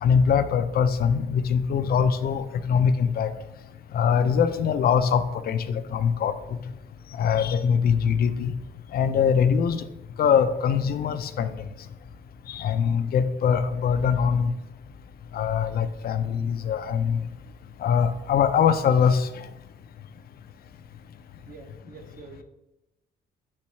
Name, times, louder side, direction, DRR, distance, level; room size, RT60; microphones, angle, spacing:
voice 1, 0.0-3.3 3.9-6.6 7.1-8.5 8.9-9.9 10.2-11.5 12.5-14.5 15.3-17.3 17.8-19.5, left 7 dB, 50° left, 10 dB, 0.4 m, -23 dB
voice 2, 21.4-22.4, right 4 dB, 45° right, 3 dB, 0.8 m, -46 dB
4.2 x 2.3 x 4.3 m, 0.96 s
cardioid pair, 90°, 20 cm